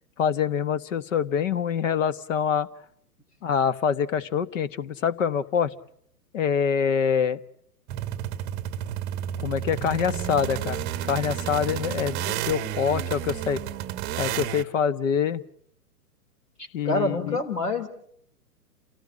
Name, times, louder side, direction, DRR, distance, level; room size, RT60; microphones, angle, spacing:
voice 1, 0.2-2.7 3.4-5.7 6.3-7.4 9.4-13.6 14.2-15.4 16.7-17.4, left 7 dB, 55° left, 16 dB, 1.4 m, -25 dB
sound 1, 7.9-14.6, right 11 dB, 20° right, 1.0 m, -31 dB
voice 2, 16.6-17.9, left 2 dB, 75° left, 4 dB, 4.7 m, -27 dB
28.5 x 17.0 x 8.6 m, 0.67 s
figure-of-eight pair, 115°, 47 cm